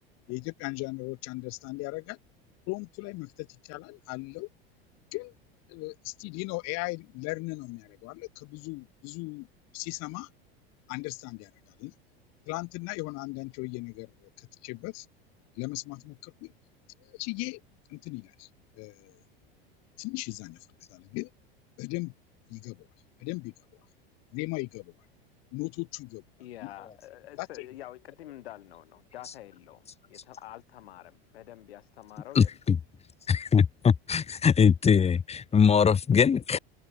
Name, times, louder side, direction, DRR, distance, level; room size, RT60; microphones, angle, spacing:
voice 1, 0.3-2.2 2.7-4.5 5.1-5.3 5.7-9.5 9.7-10.3 10.9-11.5 11.8-11.9 12.5-15.1 15.6-16.5 17.0-17.6 17.9-18.5 18.8-19.2 20.0-20.6 20.9-21.3 21.8-22.1 22.5-22.9 23.2-23.5 24.3-24.9 25.5-26.2 26.6-26.7 27.4-27.5, left 26 dB, 60° left, 4.7 m, -37 dB
voice 2, 26.4-32.6, left 14 dB, 80° left, 5.4 m, -47 dB
voice 3, 32.4-32.8 33.3-36.6, left 6 dB, 20° left, 1.1 m, -22 dB
hypercardioid pair, 100°, 30 cm